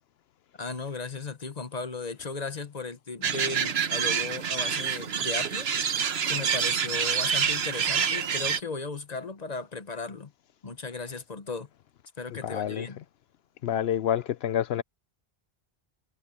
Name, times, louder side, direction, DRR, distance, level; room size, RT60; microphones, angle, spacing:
voice 1, 0.6-5.7 6.3-10.3 10.6-11.7 12.2-13.0, left 4 dB, 40° left, 1.0 m, -36 dB
sound 1, 3.2-8.6, right 7 dB, 75° right, 1.2 m, -27 dB
voice 2, 12.4-12.9 13.6-14.8, left 10 dB, 80° left, 0.9 m, -28 dB
omnidirectional pair, 1.1 m